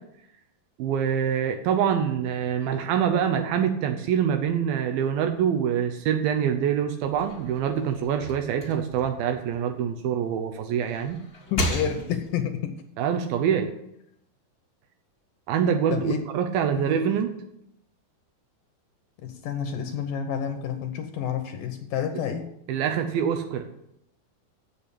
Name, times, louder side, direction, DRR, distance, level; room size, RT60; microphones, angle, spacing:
voice 1, 0.8-11.2 13.0-13.7 15.5-17.3 22.7-23.7, right 8 dB, 80° right, 5 dB, 2.6 m, -25 dB
sound 1, 7.0-10.2 10.7-12.5, left 1 dB, 45° left, 0.8 m, -34 dB
voice 2, 11.5-12.7 15.9-16.2 16.8-16.9 19.2-22.5, left 8 dB, 75° left, 5 dB, 2.3 m, -29 dB
7.9 x 7.1 x 8.4 m, 0.77 s
omnidirectional pair, 4.2 m